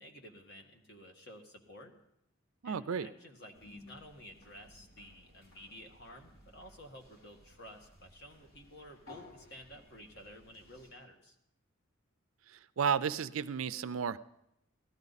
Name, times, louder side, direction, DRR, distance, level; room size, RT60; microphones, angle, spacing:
voice 1, 0.0-2.0 2.6-11.3, equal, 50° left, 3 dB, 1.7 m, -53 dB
voice 2, 2.6-3.1 12.5-14.2, right 7 dB, 75° right, 15 dB, 0.5 m, -33 dB
sound 1, 3.5-10.9, left 2 dB, 75° left, 4.9 m, -58 dB
17.5 x 13.0 x 4.1 m, 0.81 s
head